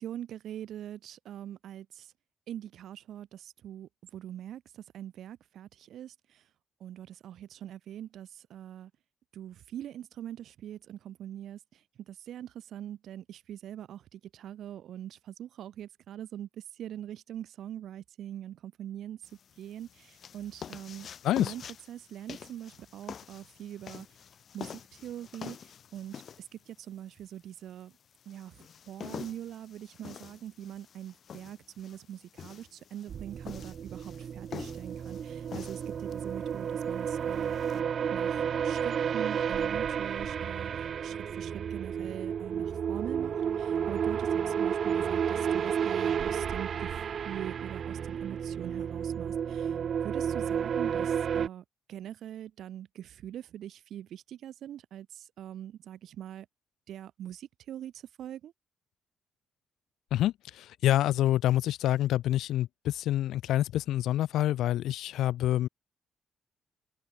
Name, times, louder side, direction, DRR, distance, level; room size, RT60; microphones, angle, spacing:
voice 1, 0.0-2.1 2.5-6.4 6.8-8.9 9.3-19.2 19.6-21.1 21.3-24.1 24.5-27.9 28.2-37.8 38.1-47.0 47.2-49.8 50.0-56.5 56.9-58.5, right 11 dB, 75° right, 3.2 m, -43 dB
sound 1, 19.2-37.8, left 8 dB, 55° left, 1.1 m, -47 dB
sound 2, 33.1-51.5, right 8 dB, 55° right, 1.1 m, -32 dB
voice 2, 60.1-65.7, left 13 dB, 85° left, 0.8 m, -27 dB
cardioid pair, 100°, 0 cm